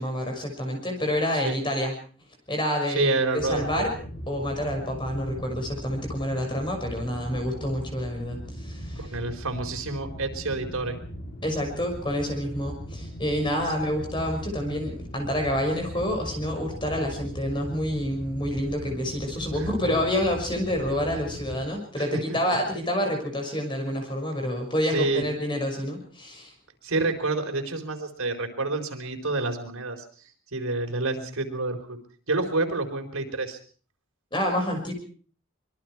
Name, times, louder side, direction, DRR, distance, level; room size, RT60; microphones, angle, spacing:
voice 1, 0.0-1.9 2.5-3.9 4.3-9.2 11.4-26.5 34.3-34.9, equal, 20° left, 2 dB, 6.1 m, -28 dB
voice 2, 2.9-3.8 9.0-11.0 19.9-20.0 22.0-22.4 24.9-25.2 26.8-30.0 30.5-32.0 32.3-33.6, right 3 dB, 90° right, 4 dB, 4.4 m, -28 dB
sound 1, 3.4-21.6, equal, 45° left, 6.6 m, -39 dB
25.0 x 22.0 x 4.7 m, 0.44 s
head